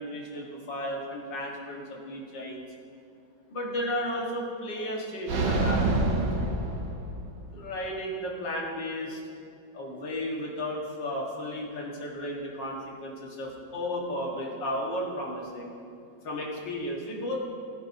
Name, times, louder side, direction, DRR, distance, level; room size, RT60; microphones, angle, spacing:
voice 1, 0.0-2.7 3.5-6.3 7.5-9.2 9.7-15.7 16.2-17.4, left 1 dB, 80° left, -2 dB, 2.3 m, -34 dB
sound 1, 5.3-7.5, right 2 dB, 75° right, 1.6 m, -27 dB
17.5 x 9.7 x 2.7 m, 2.4 s
omnidirectional pair, 1.9 m